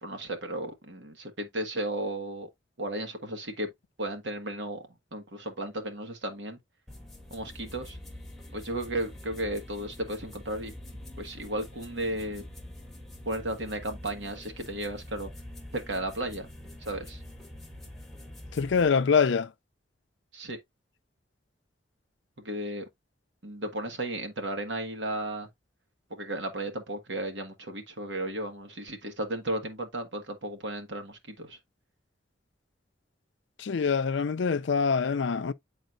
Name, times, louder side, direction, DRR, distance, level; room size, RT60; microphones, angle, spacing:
voice 1, 0.0-2.5 2.8-3.7 4.0-6.6 7.3-8.0 8.5-10.7 11.2-12.5 13.2-15.3 15.7-16.5 16.8-17.2 20.3-20.6 22.4-22.8 23.4-25.5 26.1-31.6, right 1 dB, 75° right, 1.6 m, -34 dB
sound 1, 6.9-18.9, left 1 dB, ahead, 1.6 m, -45 dB
voice 2, 18.5-19.5 33.6-35.5, left 5 dB, 75° left, 0.4 m, -25 dB
9.1 x 4.0 x 2.5 m
head